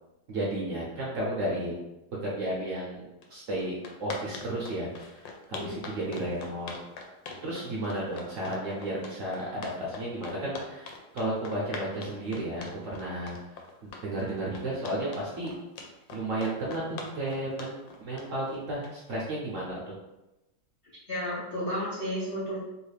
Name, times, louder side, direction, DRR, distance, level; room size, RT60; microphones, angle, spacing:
voice 1, 0.3-1.7 2.2-6.7 7.4-13.6 14.0-15.5 16.1-19.9, right 1 dB, 60° right, -5 dB, 0.9 m, -33 dB
sound 1, 3.2-3.3 3.6-19.1, left 4 dB, 80° left, 1.3 m, -42 dB
voice 2, 21.1-22.6, equal, 65° left, -8 dB, 0.5 m, -32 dB
3.1 x 2.5 x 3.3 m, 0.97 s
omnidirectional pair, 2.0 m